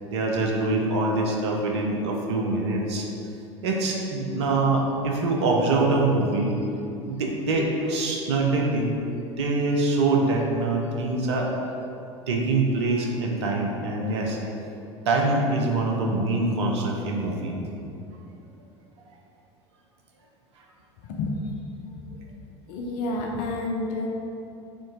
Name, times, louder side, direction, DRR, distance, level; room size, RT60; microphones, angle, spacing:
voice 1, 0.0-3.1 3.6-6.5 7.0-8.9 9.4-11.5 12.3-14.4 15.1-17.6 20.6-20.7, right 2 dB, 65° right, 0 dB, 0.6 m, -24 dB
voice 2, 21.1-21.5 22.3-22.4 22.7-24.1, left 2 dB, 55° left, 0 dB, 0.5 m, -29 dB
3.8 x 3.7 x 3.6 m, 2.7 s
figure-of-eight pair, 70°, 15 cm